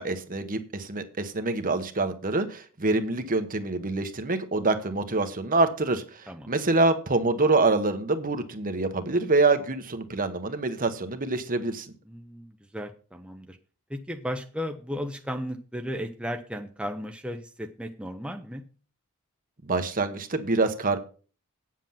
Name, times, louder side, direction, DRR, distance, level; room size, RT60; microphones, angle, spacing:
voice 1, 0.0-11.9 19.6-21.0, right 3 dB, 40° right, 8 dB, 1.1 m, -26 dB
voice 2, 12.1-13.6 13.9-18.6, equal, 5° right, 3 dB, 0.8 m, -35 dB
9.0 x 7.6 x 5.7 m, 0.38 s
head